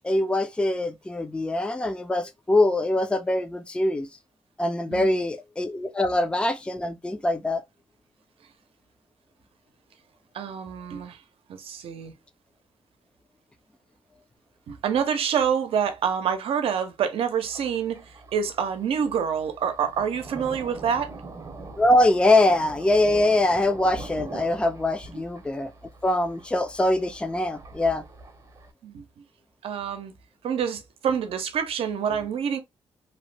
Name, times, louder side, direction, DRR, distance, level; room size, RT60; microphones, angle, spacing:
voice 1, 0.0-4.1 4.6-7.6 21.8-25.7 26.0-28.0, left 1 dB, 10° left, 0.4 m, -23 dB
voice 2, 4.9-5.2 10.3-11.2 11.5-12.1 14.7-21.1 25.1-25.2 28.8-29.0 29.6-30.1 30.4-32.6, right 7 dB, 80° right, 0.6 m, -27 dB
Thunder, 17.4-28.7, right 3 dB, 35° right, 0.7 m, -43 dB
2.8 x 2.1 x 3.1 m
cardioid pair, 80°, 10 cm